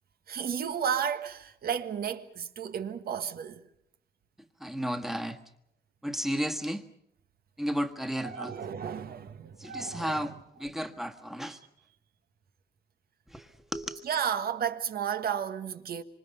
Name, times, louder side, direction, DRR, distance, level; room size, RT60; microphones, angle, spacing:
voice 1, 0.3-3.6 8.2-10.3 14.0-16.0, right 8 dB, 65° right, 1.6 m, -33 dB
voice 2, 4.6-5.4 6.0-6.8 7.6-8.5 9.6-11.6 13.3-14.1, equal, ahead, 1.6 m, -33 dB
26.5 x 26.0 x 5.5 m
wide cardioid pair, 160°, 17 cm